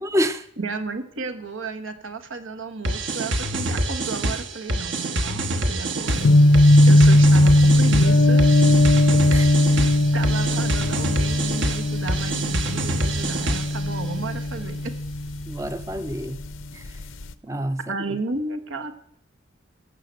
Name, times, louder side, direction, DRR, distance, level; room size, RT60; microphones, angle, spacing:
voice 1, 0.0-0.4 9.3-9.5 15.5-16.4 16.7-16.8 17.4-17.8, equal, 15° right, 11 dB, 0.5 m, -27 dB
voice 2, 0.6-8.6 9.6-9.9 10.1-14.9 17.9-19.0, right 3 dB, 85° right, 7 dB, 1.5 m, -33 dB
sound 1, 2.8-13.9, right 1 dB, 65° right, 1.4 m, -26 dB
sound 2, 6.1-16.1 16.4-17.2, left 1 dB, 85° left, 0.8 m, -18 dB
16.0 x 6.6 x 7.6 m, 0.72 s
head